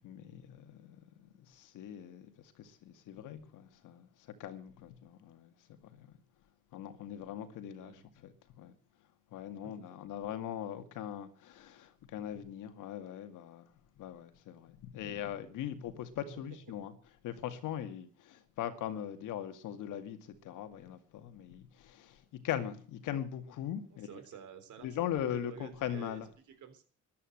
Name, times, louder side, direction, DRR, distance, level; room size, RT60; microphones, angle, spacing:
voice 1, 0.0-5.5 5.8-6.1 6.7-8.7 9.3-13.7 14.0-16.9 17.2-24.2 24.8-26.3, left 10 dB, 90° left, 2.2 m, -41 dB
voice 2, 9.6-10.0 16.2-16.6 23.9-26.2 26.5-26.8, right 7 dB, 75° right, 3.7 m, -51 dB
14.0 x 11.0 x 7.9 m
cardioid pair, 90°, 30 cm